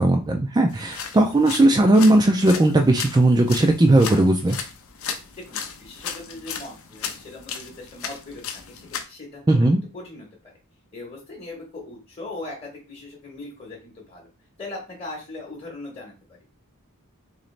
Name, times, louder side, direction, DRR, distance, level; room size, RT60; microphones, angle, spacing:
voice 1, 0.0-4.6 9.5-9.8, right 1 dB, 20° right, 3 dB, 0.4 m, -17 dB
sound 1, 0.7-9.0, left 7 dB, 65° left, 0.6 m, -36 dB
voice 2, 5.1-10.3 10.9-14.3 14.6-16.1, left 2 dB, 25° left, -2 dB, 1.0 m, -39 dB
3.8 x 3.0 x 3.2 m, 0.31 s
head